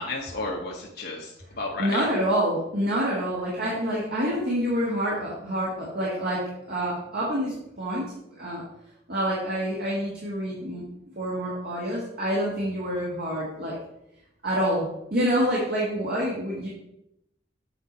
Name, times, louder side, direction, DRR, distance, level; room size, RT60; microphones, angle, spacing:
voice 1, 0.0-2.0, left 3 dB, 55° left, -2 dB, 0.9 m, -33 dB
voice 2, 1.8-6.4 6.7-8.1 8.4-8.6 9.1-10.8 11.1-13.8 14.4-16.7, equal, 55° right, -5 dB, 1.6 m, -27 dB
7.6 x 4.5 x 4.2 m, 0.83 s
head